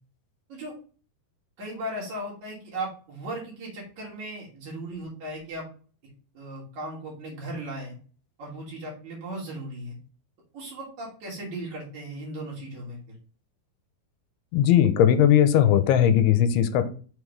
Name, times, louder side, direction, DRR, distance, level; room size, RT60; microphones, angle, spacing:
voice 1, 1.6-5.7 6.3-8.0 8.4-10.0 10.5-13.0, right 1 dB, 50° right, -4 dB, 3.1 m, -37 dB
voice 2, 14.5-16.9, left 10 dB, 85° left, 11 dB, 2.6 m, -19 dB
6.5 x 3.7 x 4.7 m, 0.40 s
omnidirectional pair, 4.7 m